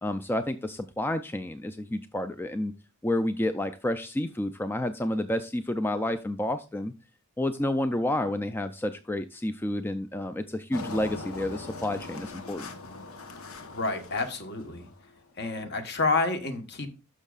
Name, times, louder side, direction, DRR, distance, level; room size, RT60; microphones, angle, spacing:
voice 1, 0.0-2.7 3.0-6.9 7.4-12.7, left 1 dB, 10° left, 9 dB, 0.3 m, -30 dB
Engine, 10.7-15.2, left 3 dB, 75° left, 1.1 m, -41 dB
voice 2, 13.7-14.9 15.4-16.9, left 3 dB, 50° left, 6 dB, 1.2 m, -29 dB
12.0 x 6.2 x 2.4 m, 0.33 s
head